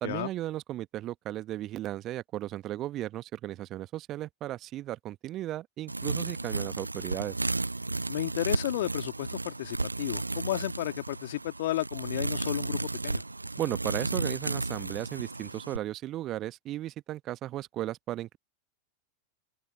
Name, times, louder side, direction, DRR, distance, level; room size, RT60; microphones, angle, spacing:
voice 1, 0.0-7.4 13.6-18.4, right 14 dB, 35° right, 1.3 m, -35 dB
sound 1, 5.9-15.8, right 2 dB, 80° right, 0.8 m, -33 dB
voice 2, 8.1-13.2, left 15 dB, 55° left, 2.2 m, -33 dB
open air
figure-of-eight pair, 90°, 0 cm